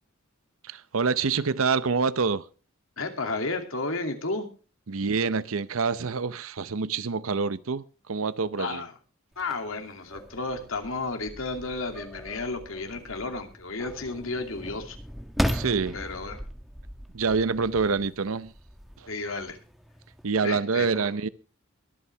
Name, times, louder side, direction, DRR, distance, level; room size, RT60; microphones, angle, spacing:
voice 1, 0.6-2.5 4.9-8.8 15.5-16.0 17.1-18.5 19.0-19.1 20.2-21.3, right 5 dB, 85° right, 0.7 m, -26 dB
voice 2, 3.0-4.5 8.6-8.9 9.4-15.0 15.9-16.4 19.1-19.6 20.4-21.1, left 3 dB, 75° left, 2.6 m, -32 dB
sound 1, 9.3-20.3, equal, ahead, 1.3 m, -37 dB
22.5 x 8.5 x 3.4 m
head